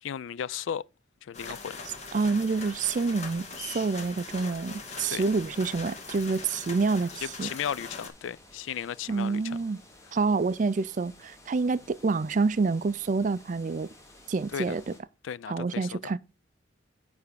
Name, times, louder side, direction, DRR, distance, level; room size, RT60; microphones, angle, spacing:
voice 1, 0.0-0.9 1.2-1.8 5.1-5.2 7.2-9.6 14.5-14.8 15.2-16.1, left 8 dB, 80° left, 0.3 m, -35 dB
sound 1, 1.3-8.1, left 4 dB, 35° left, 1.5 m, -41 dB
voice 2, 2.1-7.5 9.1-9.8 10.1-13.9 14.3-14.9 15.5-16.2, right 4 dB, 40° right, 0.4 m, -27 dB
sound 2, 2.3-15.0, left 1 dB, 15° left, 1.3 m, -55 dB
9.8 x 3.4 x 6.6 m
head